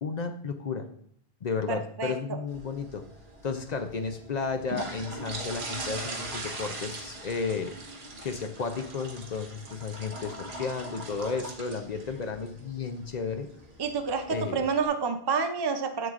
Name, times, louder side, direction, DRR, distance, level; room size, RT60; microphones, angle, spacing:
voice 1, 0.0-0.9 1.4-3.1 3.4-7.7 8.2-13.5 14.3-14.6, left 5 dB, 50° left, 7 dB, 0.6 m, -33 dB
voice 2, 1.7-2.1 13.8-16.1, right 5 dB, 35° right, 7 dB, 0.4 m, -29 dB
sound 1, 2.5-14.9, right 2 dB, 90° right, 1.4 m, -41 dB
7.8 x 7.5 x 2.4 m, 0.63 s
omnidirectional pair, 1.0 m